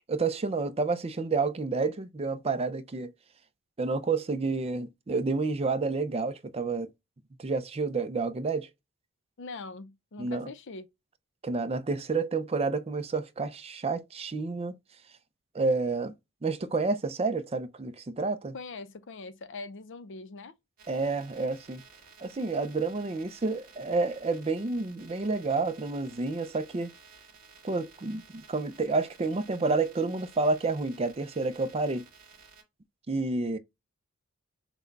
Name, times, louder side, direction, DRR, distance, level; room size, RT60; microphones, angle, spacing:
voice 1, 0.1-3.1 3.8-6.9 7.4-8.7 10.2-10.5 11.4-14.7 15.5-16.1 16.4-18.6 20.9-21.8 22.2-26.9 27.6-32.1 33.1-33.6, right 3 dB, 25° right, 0.5 m, -29 dB
voice 2, 9.4-10.9 18.5-20.5, left 3 dB, 55° left, 0.6 m, -42 dB
sound 1, 20.8-32.6, right 5 dB, 45° right, 1.9 m, -55 dB
6.0 x 2.2 x 3.9 m
head